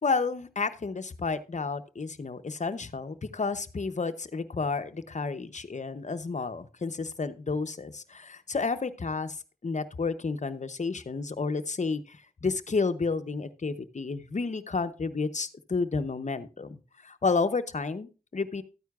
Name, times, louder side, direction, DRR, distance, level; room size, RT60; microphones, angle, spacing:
voice 1, 0.0-9.4 9.6-18.6, left 4 dB, 50° left, 10 dB, 0.7 m, -31 dB
13.0 x 9.3 x 2.3 m, 0.31 s
wide cardioid pair, 65°, 16 cm